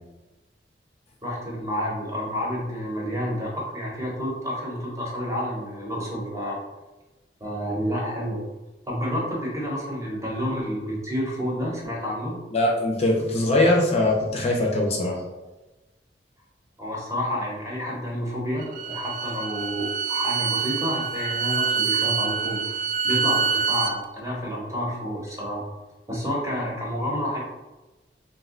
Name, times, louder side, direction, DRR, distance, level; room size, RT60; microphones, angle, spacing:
voice 1, 1.2-6.6 7.4-8.4 8.8-12.4 16.8-22.8 23.0-25.6 26.1-27.4, equal, 20° right, -4 dB, 0.8 m, -29 dB
voice 2, 12.5-15.2, left 1 dB, 35° left, -1 dB, 0.5 m, -21 dB
Bowed string instrument, 18.6-24.0, right 6 dB, 50° right, 0.3 m, -26 dB
2.6 x 2.1 x 3.7 m, 1.1 s
head